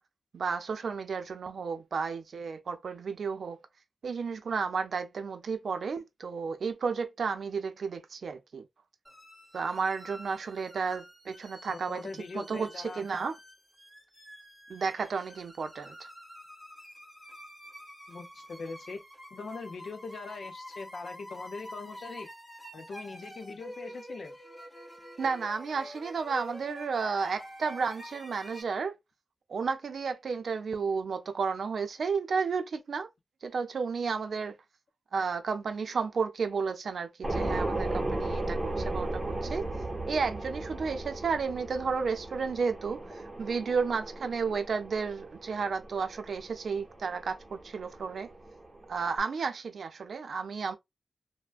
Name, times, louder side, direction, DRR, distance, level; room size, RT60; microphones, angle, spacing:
voice 1, 0.3-3.6 4.0-8.6 9.5-12.0 12.3-13.3 14.7-16.1 25.2-28.9 29.5-33.1 33.4-34.5 35.1-39.7 40.1-48.3 48.9-50.8, right 5 dB, 80° right, 0.5 m, -32 dB
sound 1, 9.0-28.6, equal, 10° left, 1.1 m, -48 dB
voice 2, 11.7-13.0 18.1-19.0 19.3-22.3 22.7-24.4, left 4 dB, 75° left, 0.6 m, -41 dB
sound 2, 37.2-49.2, right 2 dB, 20° right, 0.9 m, -36 dB
3.3 x 2.1 x 2.3 m
wide cardioid pair, 110°, 0 cm